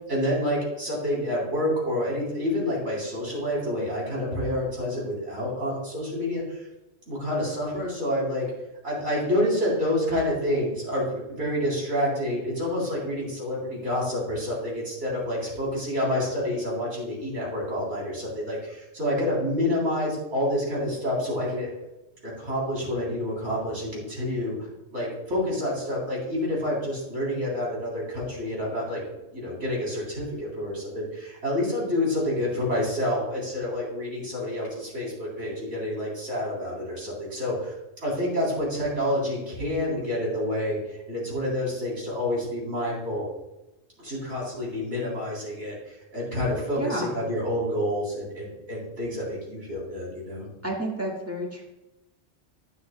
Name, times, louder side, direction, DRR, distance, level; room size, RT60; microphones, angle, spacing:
voice 1, 0.1-6.7 7.1-8.5 8.8-21.7 22.2-24.6 24.9-29.0 29.3-37.7 38.0-43.2 44.0-50.5, left 1 dB, 85° right, -4 dB, 3.9 m, -28 dB
voice 2, 46.8-47.2 50.6-51.6, right 1 dB, 15° right, -2 dB, 1.7 m, -30 dB
10.5 x 9.4 x 2.2 m, 0.94 s
omnidirectional pair, 1.2 m